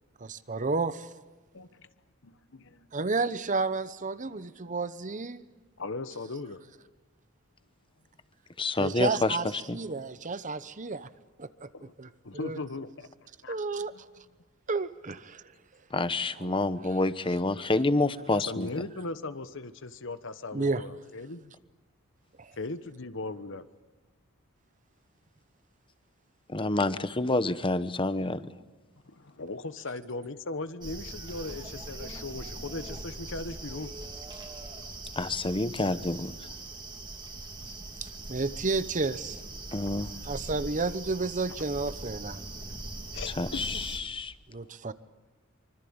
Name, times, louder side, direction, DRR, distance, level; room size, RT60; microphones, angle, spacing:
voice 1, 0.2-1.1 2.9-5.5 8.8-11.1 11.4-11.7 12.0-12.6 13.5-13.9 14.7-15.4 16.4-16.6 20.5-20.8 22.4-22.5 38.3-39.4 40.2-42.4 44.5-44.9, right 3 dB, 35° right, 14 dB, 0.9 m, -31 dB
voice 2, 1.5-1.9 2.2-2.9 4.3-4.4 5.8-6.6 11.7-11.9 12.2-13.1 13.4-13.5 18.5-21.5 22.6-23.7 29.1-33.9 43.1-43.8, left 2 dB, 60° left, 12 dB, 1.2 m, -38 dB
voice 3, 8.6-9.4 9.7-9.8 15.9-18.8 26.5-28.5 35.2-36.3 39.7-40.1 43.4-44.3, left 2 dB, 25° left, 13 dB, 1.0 m, -28 dB
sound 1, 30.8-44.0, right 2 dB, 20° right, 2.6 m, -41 dB
25.0 x 25.0 x 8.8 m, 1.2 s
head